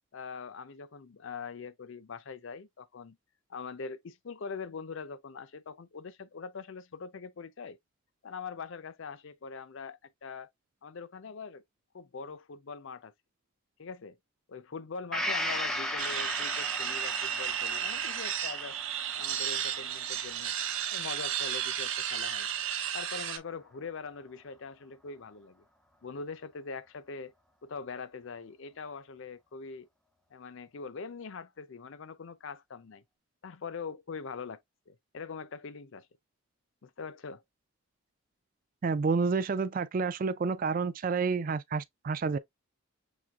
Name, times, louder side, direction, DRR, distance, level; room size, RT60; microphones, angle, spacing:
voice 1, 0.1-3.2 3.5-7.8 8.2-10.5 10.8-11.6 11.9-13.1 13.8-14.2 14.5-18.8 19.2-20.6 20.9-22.5 22.9-25.6 26.0-27.3 27.6-29.9 30.3-33.0 33.4-36.1 36.8-37.4, left 5 dB, 60° left, 0.5 m, -42 dB
Gong, 15.1-22.8 23.1-23.2, equal, ahead, 0.6 m, -38 dB
sound 1, 16.0-23.4, right 9 dB, 65° right, 0.9 m, -33 dB
voice 2, 38.8-42.4, right 4 dB, 40° right, 0.3 m, -29 dB
6.1 x 3.3 x 2.3 m
head